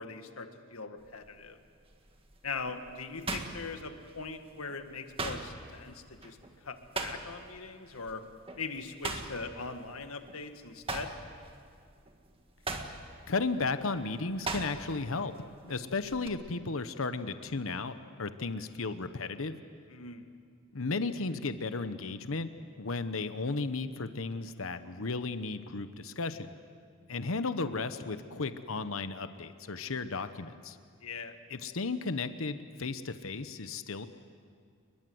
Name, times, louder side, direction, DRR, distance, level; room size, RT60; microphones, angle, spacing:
voice 1, 0.0-1.6 2.4-6.4 6.6-8.2 8.6-11.1 19.9-20.3 31.0-31.4, left 4 dB, 85° left, 7 dB, 1.8 m, -41 dB
sound 1, 1.0-1.3 1.9-4.4 4.7-7.6 7.9-8.1 8.5-10.4 10.7-15.1 15.4-16.3, right 3 dB, 25° right, 1.9 m, -39 dB
voice 2, 13.3-15.3 15.6-19.5 20.7-22.5 22.8-26.5 27.1-30.8 31.5-34.1, left 3 dB, 70° left, 11 dB, 1.0 m, -34 dB
29.5 x 21.5 x 7.9 m, 2.2 s
head